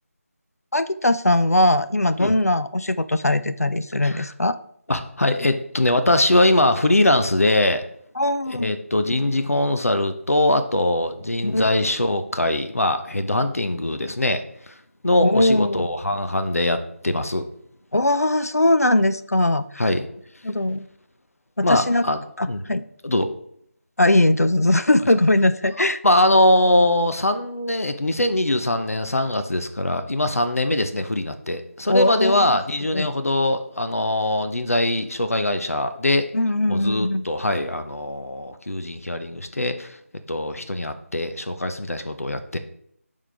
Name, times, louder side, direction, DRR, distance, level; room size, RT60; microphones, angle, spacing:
voice 1, 0.7-4.6 8.2-8.7 11.4-11.7 15.2-15.9 17.9-19.8 20.4-20.9 21.6-22.0 22.4-22.8 24.0-26.0 31.9-32.6 32.9-33.1 36.3-37.2, left 1 dB, 90° left, 13 dB, 0.5 m, -20 dB
voice 2, 4.9-7.8 8.5-14.7 15.0-17.5 19.8-20.1 21.6-22.2 22.5-22.6 23.0-23.3 26.0-36.3 36.7-40.0 40.3-42.6, left 1 dB, 70° left, 9 dB, 0.9 m, -22 dB
10.0 x 3.7 x 3.4 m, 0.70 s
figure-of-eight pair, 165°, 8 cm